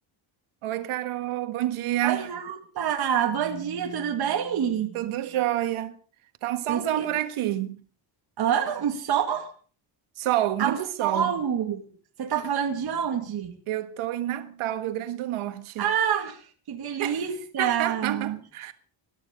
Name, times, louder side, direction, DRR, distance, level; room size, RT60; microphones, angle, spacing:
voice 1, 0.6-2.3 4.9-6.0 6.4-7.8 10.2-11.4 13.7-15.9 17.0-17.2 17.6-18.7, right 13 dB, 90° right, 1.6 m, -28 dB
voice 2, 2.0-5.0 6.7-7.1 8.4-9.5 10.6-11.8 12.2-13.6 15.8-16.4 16.7-18.4, right 8 dB, 50° right, 2.3 m, -27 dB
21.0 x 12.5 x 5.2 m
cardioid pair, 175°, 48 cm